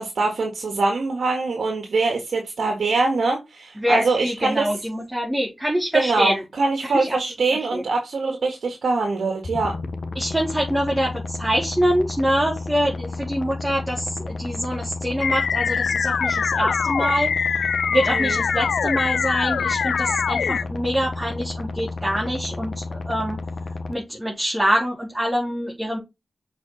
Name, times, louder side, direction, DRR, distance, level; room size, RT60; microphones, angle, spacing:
voice 1, 0.0-4.7 5.9-9.7 18.1-18.4, right 3 dB, 75° right, 1.9 m, -23 dB
voice 2, 3.8-6.4 6.8-7.2 7.7-7.8 10.1-17.5 17.9-23.4 23.9-26.0, equal, 15° right, 4.1 m, -25 dB
sound 1, 9.4-23.9, left 3 dB, 60° left, 1.2 m, -32 dB
sound 2, 15.2-20.6, left 6 dB, 85° left, 0.3 m, -23 dB
7.1 x 5.1 x 4.1 m
cardioid pair, 50°, 0 cm